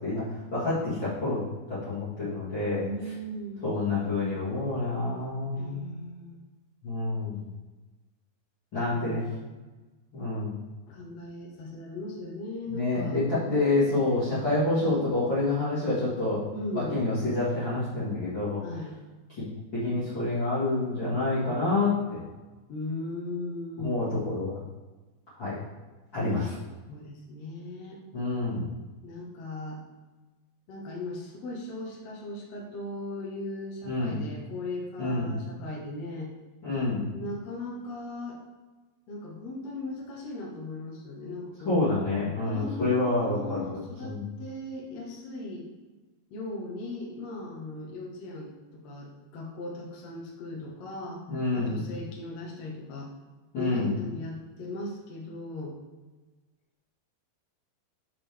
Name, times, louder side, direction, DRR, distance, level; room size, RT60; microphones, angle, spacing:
voice 1, 0.0-2.8 3.6-5.9 6.8-7.5 8.7-9.2 10.1-10.5 12.7-16.5 16.7-18.6 19.7-22.2 23.8-24.6 25.4-25.6 26.1-26.6 28.1-28.6 33.8-34.2 35.0-35.3 36.6-37.1 41.7-44.2 51.3-51.8 53.5-54.0, left 2 dB, 40° left, -13 dB, 1.8 m, -28 dB
voice 2, 2.8-3.6 5.5-6.4 8.9-9.5 10.9-13.2 16.5-17.1 18.6-18.9 22.7-24.0 26.9-28.0 29.0-29.8 30.7-36.3 37.1-38.4 39.1-41.9 42.4-45.7 46.3-51.2 51.5-53.1 53.5-55.8, left 2 dB, 75° left, -3 dB, 1.5 m, -38 dB
6.0 x 6.0 x 3.4 m, 1.2 s
omnidirectional pair, 4.9 m